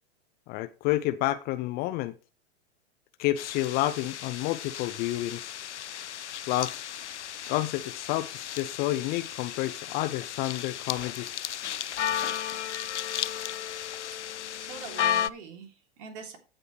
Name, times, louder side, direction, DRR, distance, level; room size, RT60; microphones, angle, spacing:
voice 1, 0.5-2.1 3.2-5.6 6.5-6.9 7.5-11.4, left 15 dB, 30° left, 0.5 m, -30 dB
sound 1, 3.4-15.3, left 10 dB, 80° left, 0.5 m, -34 dB
voice 2, 14.6-16.4, right 5 dB, 50° right, 3.1 m, -44 dB
15.5 x 5.2 x 3.3 m
figure-of-eight pair, 100°, 34 cm